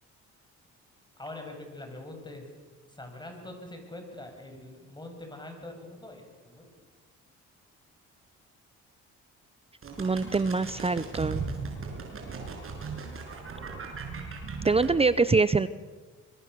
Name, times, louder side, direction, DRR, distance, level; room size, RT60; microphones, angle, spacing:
voice 1, 1.2-2.5 2.9-6.7, left 2 dB, 15° left, 4 dB, 7.0 m, -43 dB
sound 1, 9.8-15.0, right 4 dB, 45° right, 6.2 m, -37 dB
voice 2, 10.0-11.4 14.6-15.7, right 4 dB, 20° right, 15 dB, 0.7 m, -24 dB
25.0 x 22.5 x 6.9 m, 1.3 s
cardioid pair, 90°, 30 cm